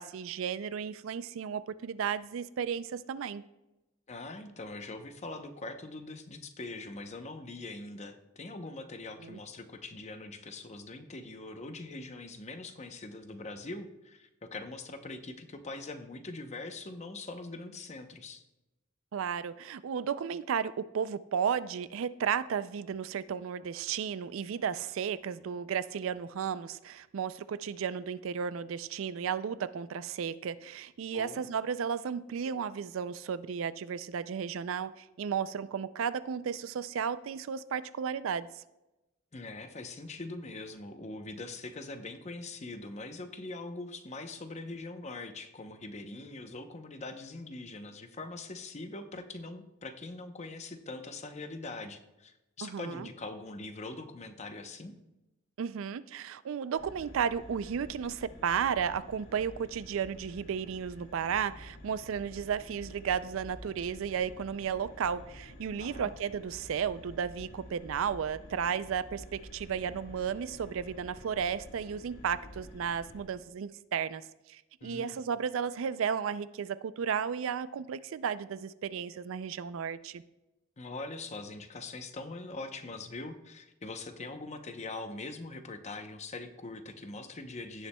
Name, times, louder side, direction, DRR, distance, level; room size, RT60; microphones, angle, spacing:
voice 1, 0.0-3.4 9.2-9.4 19.1-38.6 52.6-53.1 55.6-80.2, right 7 dB, 70° right, 16 dB, 0.4 m, -34 dB
voice 2, 4.1-18.4 31.1-31.4 39.3-54.9 65.8-66.1 74.8-75.3 80.8-87.9, left 2 dB, 35° left, 7 dB, 0.7 m, -42 dB
sound 1, 56.8-73.2, left 1 dB, 60° left, 1.7 m, -50 dB
16.0 x 7.1 x 2.2 m, 0.98 s
head